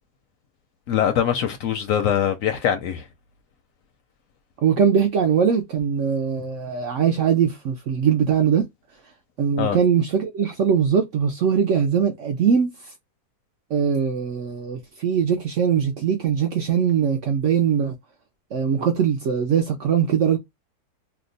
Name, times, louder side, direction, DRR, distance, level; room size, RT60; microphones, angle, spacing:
voice 1, 0.9-3.1 9.6-9.8, left 9 dB, 70° left, 0.8 m, -22 dB
voice 2, 4.6-8.7 9.4-12.7 13.7-17.9 18.5-20.4, right 7 dB, 70° right, 0.7 m, -21 dB
2.8 x 2.2 x 3.9 m
omnidirectional pair, 1.7 m